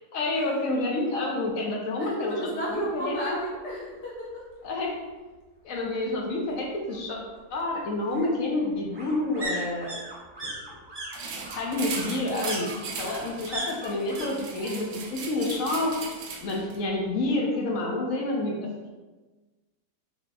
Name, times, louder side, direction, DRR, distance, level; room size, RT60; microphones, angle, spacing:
voice 1, 0.1-2.4 2.7-3.4 4.6-5.0 5.6-7.2 7.5-10.0 10.4-10.5 11.4-12.7 13.0-15.9 16.4-18.6, left 2 dB, 65° left, -1 dB, 0.9 m, -28 dB
voice 2, 2.0-4.5, equal, 85° left, -4 dB, 1.6 m, -33 dB
sound 1, 3.4-3.5 3.9-4.0 4.2-5.2 6.5-14.3 14.6-15.1 15.4-16.4 16.7-16.8, right 1 dB, 40° right, 0.3 m, -39 dB
sound 2, 11.1-16.8, right 4 dB, 70° right, 0.6 m, -38 dB
4.0 x 3.0 x 2.2 m, 1.2 s
omnidirectional pair, 1.7 m